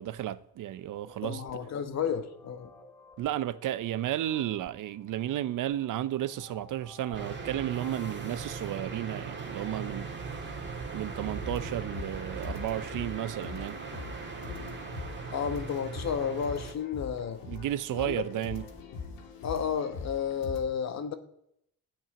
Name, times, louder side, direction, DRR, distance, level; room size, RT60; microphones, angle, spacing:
voice 1, 0.0-1.4 3.2-10.1 10.9-13.8 17.5-18.7, right 12 dB, 65° right, 0.7 m, -33 dB
sound 1, 1.0-19.3, left 1 dB, 10° left, 3.6 m, -57 dB
voice 2, 1.2-2.7 15.3-17.4 18.0-18.2 19.4-21.1, left 7 dB, 50° left, 1.2 m, -32 dB
sound 2, 7.1-16.7, right 4 dB, 30° right, 2.0 m, -39 dB
sound 3, 11.1-20.6, left 4 dB, 80° left, 2.7 m, -43 dB
13.5 x 6.0 x 9.8 m
cardioid pair, 140°, 34 cm